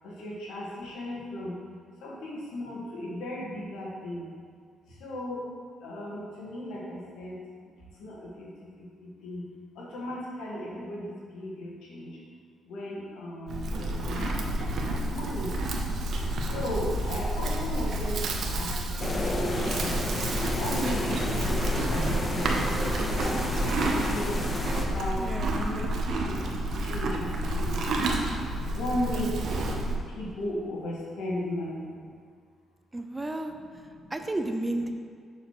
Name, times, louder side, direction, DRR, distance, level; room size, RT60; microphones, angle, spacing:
voice 1, 0.0-1.6 2.0-4.3 4.9-5.4 5.8-7.7 8.0-8.5 8.8-9.5 9.7-12.2 12.7-14.3 14.8-15.6 16.4-20.1 20.5-22.7 23.2-24.4 24.7-27.9 28.7-29.5 30.1-32.0 34.0-34.1, left 1 dB, 85° left, -4 dB, 1.6 m, -36 dB
Livestock farm animals working animals, 13.5-30.0, right 1 dB, 65° right, 0.8 m, -29 dB
sound 1, 19.0-24.8, left 2 dB, 30° left, 0.9 m, -31 dB
voice 2, 25.2-25.7 32.9-33.8 34.1-34.9, right 1 dB, 15° right, 6 dB, 0.5 m, -32 dB
6.6 x 6.4 x 3.1 m, 2.1 s
cardioid pair, 90°, 0 cm